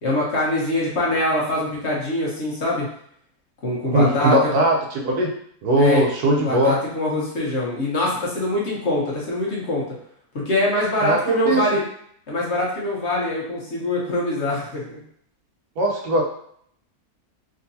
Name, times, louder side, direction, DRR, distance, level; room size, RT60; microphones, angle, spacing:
voice 1, 0.0-2.9 3.6-4.3 5.8-6.0 6.4-9.9 10.3-11.8 12.3-15.0, left 1 dB, 50° left, -4 dB, 1.1 m, -23 dB
voice 2, 3.9-4.8 5.0-5.3 5.6-6.7 11.0-11.6 15.8-16.2, right 1 dB, 80° right, 0 dB, 1.3 m, -19 dB
3.8 x 2.8 x 2.7 m, 0.66 s
omnidirectional pair, 1.6 m